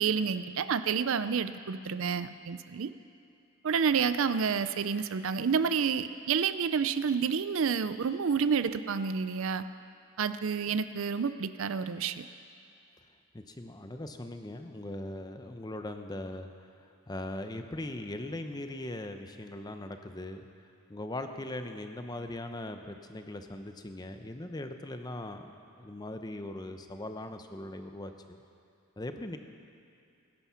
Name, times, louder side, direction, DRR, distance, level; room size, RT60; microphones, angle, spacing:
voice 1, 0.0-2.9 3.6-9.7 10.2-12.2, right 6 dB, 60° right, 13 dB, 0.4 m, -29 dB
voice 2, 13.3-16.5 17.1-20.4 20.9-25.5 25.8-28.4 29.0-29.4, left 1 dB, 20° left, 7 dB, 0.7 m, -40 dB
18.5 x 10.5 x 5.7 m, 2.6 s
head